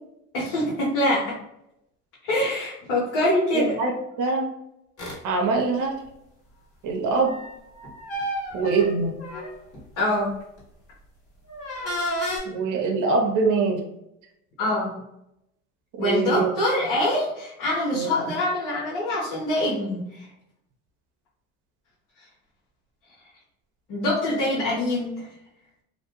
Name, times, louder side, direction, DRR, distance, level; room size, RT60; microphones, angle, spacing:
voice 1, 0.3-1.4 2.3-3.8 10.0-10.3 14.6-14.9 16.0-20.0 23.9-25.2, left 1 dB, 65° left, -7 dB, 1.0 m, -24 dB
voice 2, 3.5-3.9 4.2-4.5 5.2-6.0 6.8-7.4 8.5-9.1 12.5-13.8 16.0-16.5 17.9-18.1, right 4 dB, 60° right, 3 dB, 0.7 m, -23 dB
sound 1, 5.0-5.2 7.2-9.8 10.4-10.6 11.5-12.4, equal, 40° left, 1.5 m, -31 dB
2.5 x 2.2 x 2.9 m, 0.83 s
supercardioid pair, 85°, 36 cm